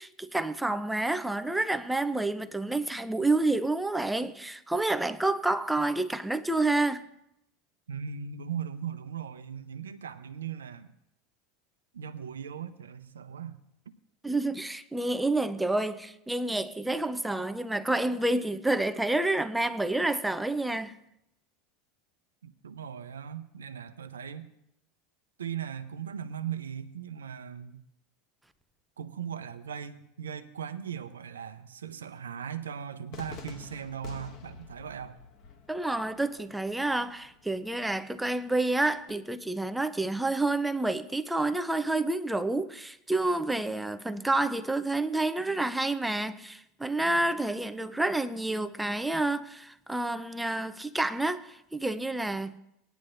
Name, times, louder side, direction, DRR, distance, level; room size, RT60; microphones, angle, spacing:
voice 1, 0.0-7.0 14.2-21.0 35.7-52.6, right 2 dB, 5° right, 0.7 m, -29 dB
voice 2, 7.9-10.9 11.9-13.6 22.4-24.5 25.4-27.8 29.0-35.2, right 8 dB, 85° right, 0.7 m, -38 dB
Cheering / Fireworks, 33.1-39.1, left 6 dB, 50° left, 1.4 m, -49 dB
19.5 x 10.0 x 2.6 m
hypercardioid pair, 85°, 0 cm